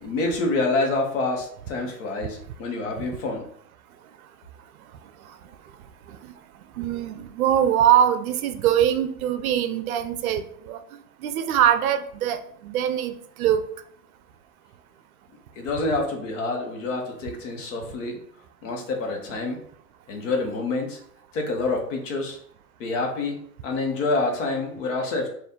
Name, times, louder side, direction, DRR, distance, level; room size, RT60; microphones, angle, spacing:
voice 1, 0.0-3.4 15.6-18.2 18.6-19.6 20.1-21.0 21.3-22.4 22.8-23.4 23.6-25.3, left 3 dB, 55° left, 2 dB, 1.1 m, -27 dB
voice 2, 6.8-10.8 11.2-13.6, right 10 dB, 65° right, 9 dB, 0.6 m, -22 dB
4.2 x 2.6 x 3.6 m, 0.63 s
hypercardioid pair, 145°, 46 cm